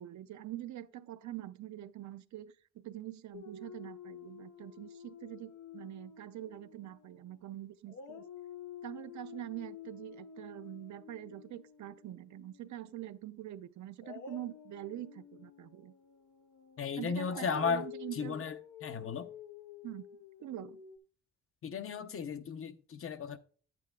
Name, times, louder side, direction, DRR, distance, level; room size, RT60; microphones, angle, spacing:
voice 1, 0.0-8.2 8.8-15.9 17.0-18.5 19.8-20.0 20.4-20.8, right 13 dB, 70° right, 0.5 m, -44 dB
Dog, 3.3-7.5 7.9-12.9 14.0-21.0, left 8 dB, 85° left, 0.8 m, -50 dB
voice 2, 16.8-19.3 21.6-23.4, left 6 dB, 50° left, 0.7 m, -35 dB
10.0 x 8.4 x 2.3 m
cardioid pair, 110°, 29 cm